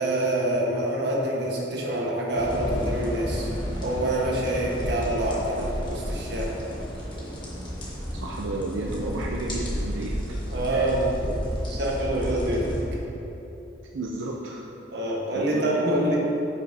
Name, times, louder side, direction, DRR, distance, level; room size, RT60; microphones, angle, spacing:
voice 1, 0.0-3.5 3.8-6.6 10.5-11.4 11.6-12.7 14.9-16.2, right 1 dB, 65° right, -3 dB, 1.3 m, -26 dB
sound 1, 2.3-12.8, equal, 25° left, 1.3 m, -32 dB
voice 2, 8.1-10.2 10.7-10.9 13.9-14.6 15.3-15.7, right 2 dB, 90° right, -1 dB, 0.5 m, -32 dB
9.5 x 5.7 x 2.7 m, 3.0 s
head